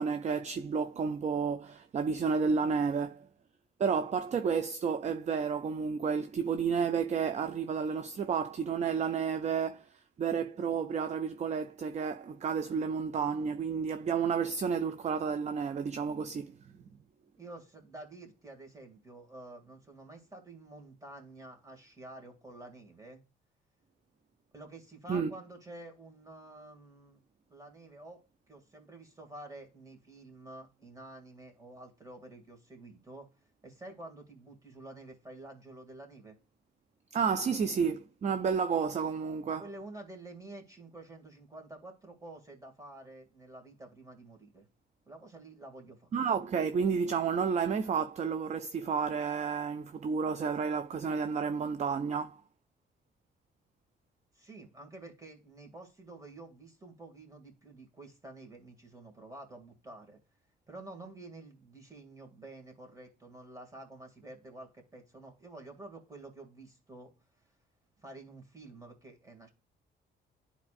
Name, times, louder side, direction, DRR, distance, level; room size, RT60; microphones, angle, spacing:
voice 1, 0.0-3.3 3.8-9.9 10.2-16.5 25.1-25.3 37.1-39.7 46.1-52.4, right 6 dB, 35° right, 0.4 m, -31 dB
voice 2, 17.4-23.2 24.5-27.2 27.5-28.2 28.5-33.3 33.6-36.4 39.6-44.7 45.1-46.1 54.3-60.2 60.7-67.1 68.0-69.5, right 2 dB, 15° right, 2.3 m, -49 dB
11.0 x 4.2 x 2.5 m
cardioid pair, 90°, 20 cm